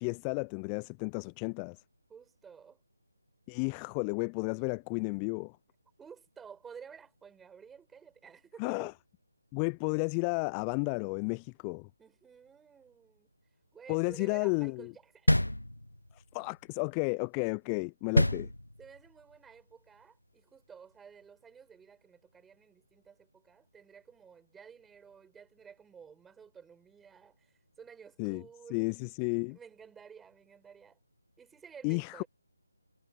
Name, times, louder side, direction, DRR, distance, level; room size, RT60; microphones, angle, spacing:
voice 1, 0.0-1.8 3.5-5.6 8.6-8.9 9.5-11.9 13.9-14.9 16.1-18.5 28.2-28.4 28.7-29.6 31.8-32.2, left 39 dB, 15° left, 0.5 m, -32 dB
voice 2, 2.1-2.8 6.0-8.9 12.0-13.3 13.7-15.6 18.8-28.9 29.5-31.0 31.4-32.3, right 6 dB, 5° right, 7.6 m, -53 dB
sound 1, 15.3-16.2 18.1-19.1, left 1 dB, 85° left, 0.6 m, -27 dB
figure-of-eight pair, 150°, 0 cm